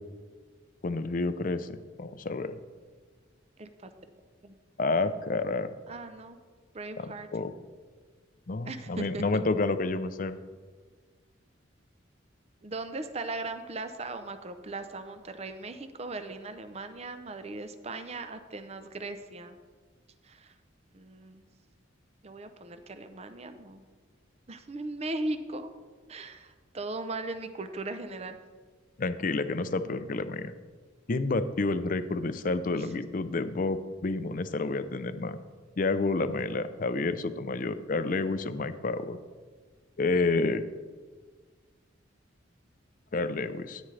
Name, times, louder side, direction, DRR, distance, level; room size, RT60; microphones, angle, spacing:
voice 1, 0.8-2.5 4.8-5.7 7.0-7.5 8.5-10.4 29.0-30.5 31.1-35.4 35.8-39.2 40.0-40.6 43.1-43.8, left 3 dB, 45° left, 12 dB, 0.5 m, -29 dB
voice 2, 3.6-3.9 4.4-4.5 5.9-6.4 6.7-7.3 8.7-9.4 12.6-19.6 20.2-20.5 20.9-21.4 22.2-23.8 24.5-25.7 26.1-28.4 32.7-32.9, right 2 dB, 35° right, 9 dB, 0.6 m, -38 dB
13.5 x 9.1 x 3.3 m, 1.5 s
head